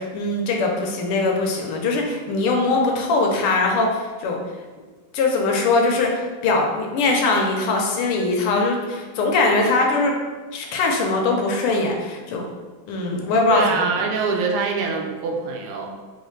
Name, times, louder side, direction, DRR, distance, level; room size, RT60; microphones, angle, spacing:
voice 1, 0.0-4.4 5.1-10.1 10.5-12.5 12.9-13.8, left 3 dB, 85° left, 1 dB, 1.6 m, -21 dB
voice 2, 13.5-15.9, right 4 dB, 80° right, 1 dB, 1.5 m, -24 dB
3.9 x 3.2 x 3.1 m, 1.4 s
omnidirectional pair, 2.4 m